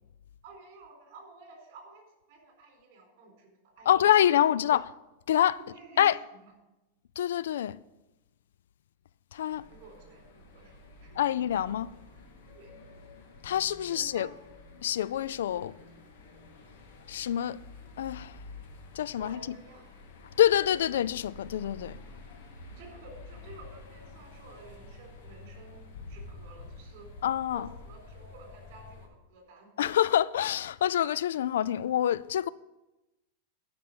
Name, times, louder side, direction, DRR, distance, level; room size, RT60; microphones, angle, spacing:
voice 1, 0.4-2.0 2.3-3.9 5.6-6.5 9.7-11.4 12.5-12.7 13.9-14.3 19.2-19.9 22.2-22.3 22.8-27.1 27.5-29.7, right 3 dB, 50° right, 4.0 m, -52 dB
voice 2, 3.9-4.9 5.3-5.6 6.0-6.2 7.2-7.8 9.3-9.6 11.2-11.9 13.4-14.3 14.8-15.7 17.1-17.6 18.0-18.4 18.9-19.4 20.4-22.0 27.2-27.7 29.8-32.5, left 11 dB, 85° left, 0.3 m, -26 dB
sound 1, 9.5-29.1, left 3 dB, 65° left, 2.1 m, -49 dB
12.0 x 5.5 x 6.7 m
supercardioid pair, 155°, 0 cm